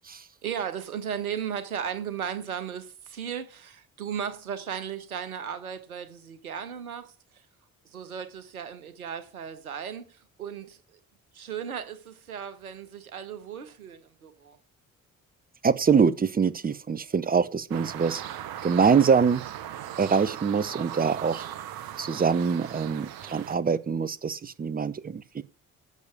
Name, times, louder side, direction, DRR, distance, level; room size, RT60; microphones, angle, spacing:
voice 1, 0.4-7.1 7.9-11.0 11.3-14.6, right 8 dB, 80° right, 1.1 m, -36 dB
voice 2, 15.6-18.2 18.6-19.4 20.0-21.5 22.0-25.4, right 6 dB, 20° right, 0.8 m, -24 dB
sound 1, 17.7-23.6, right 11 dB, 55° right, 1.1 m, -39 dB
8.4 x 6.7 x 8.3 m
figure-of-eight pair, 45°, 42 cm